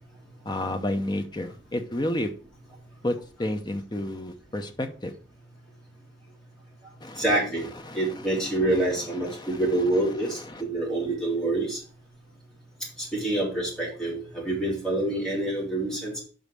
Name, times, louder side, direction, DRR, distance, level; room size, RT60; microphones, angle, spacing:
voice 1, 0.4-2.3 3.0-5.1 7.0-7.2 7.8-8.3 9.3-9.6 10.5-10.6, left 1 dB, 20° left, 6 dB, 0.8 m, -31 dB
voice 2, 7.2-7.6 7.9-11.8 13.0-16.2, right 2 dB, 5° left, -6 dB, 3.5 m, -26 dB
5.5 x 5.4 x 6.3 m, 0.39 s
head